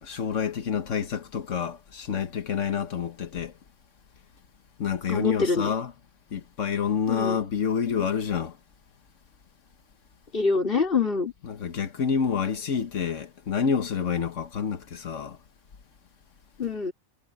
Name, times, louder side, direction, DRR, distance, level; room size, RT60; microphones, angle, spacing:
voice 1, 0.0-3.5 4.8-5.9 6.3-8.5 11.6-15.4, left 7 dB, 80° left, 1.5 m, -28 dB
voice 2, 5.1-5.7 7.1-7.4 10.3-11.3 16.6-16.9, left 4 dB, 45° left, 4.0 m, -25 dB
omnidirectional pair, 1.3 m